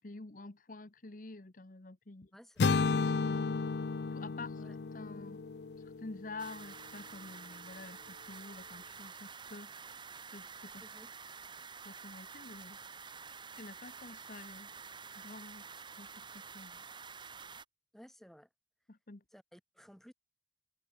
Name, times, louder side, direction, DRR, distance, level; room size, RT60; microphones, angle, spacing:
voice 1, 0.0-2.3 2.6-3.6 4.1-5.4 5.8-9.7 10.3-10.8 11.8-12.8 13.6-14.7 15.1-15.7 16.0-16.3 16.5-16.8 18.9-19.2, left 3 dB, 50° left, 1.1 m, -49 dB
voice 2, 2.3-2.8 3.3-3.5 4.5-4.8 10.8-11.1 17.9-18.5 19.3-20.1, equal, ahead, 7.8 m, -57 dB
sound 1, 2.6-6.6, left 4 dB, 70° left, 0.5 m, -33 dB
sound 2, 6.4-17.6, right 5 dB, 25° right, 2.3 m, -49 dB
head